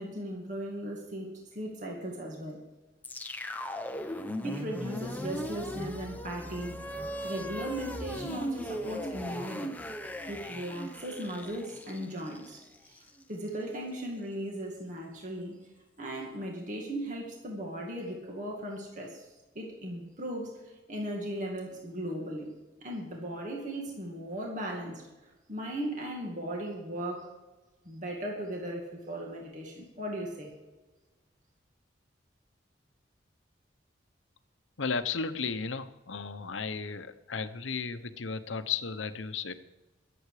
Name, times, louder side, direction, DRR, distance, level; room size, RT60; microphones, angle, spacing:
voice 1, 0.0-2.6 4.4-9.8 10.3-13.0 13.3-15.6 16.0-22.5 22.8-25.0 25.5-27.3 27.8-30.5, right 1 dB, 40° right, -1 dB, 2.2 m, -37 dB
sound 1, 3.0-13.2, equal, 10° left, 0.7 m, -38 dB
voice 2, 34.8-39.5, left 5 dB, 85° left, 10 dB, 0.9 m, -34 dB
22.0 x 8.0 x 4.9 m, 1.2 s
head